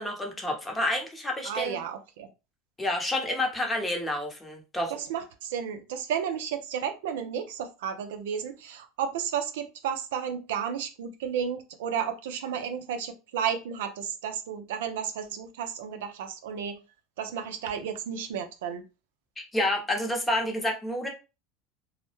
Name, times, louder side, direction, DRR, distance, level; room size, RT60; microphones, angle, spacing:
voice 1, 0.0-1.8 2.8-4.9 19.4-21.1, left 1 dB, 15° left, 2 dB, 0.8 m, -29 dB
voice 2, 1.4-2.3 4.9-16.8 17.2-18.8, right 8 dB, 80° right, 7 dB, 0.4 m, -32 dB
2.1 x 2.0 x 2.9 m, 0.29 s
hypercardioid pair, 95°, 0 cm